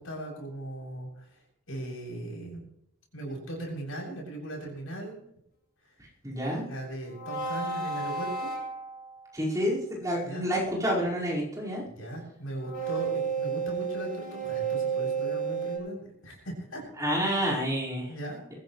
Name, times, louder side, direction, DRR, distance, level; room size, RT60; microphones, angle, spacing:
voice 1, 0.0-1.4 1.7-2.7 3.1-5.2 5.8-5.9 6.6-8.5 10.3-10.5 11.9-16.8 18.1-18.4, right 1 dB, 65° left, -2 dB, 7.7 m, -38 dB
voice 2, 6.2-6.6 9.3-11.8 17.0-18.1, equal, 15° right, -6 dB, 5.1 m, -28 dB
sound 1, 7.1-9.3 12.6-15.8, right 5 dB, 45° left, 7.4 m, -32 dB
22.5 x 15.5 x 3.3 m, 0.76 s
head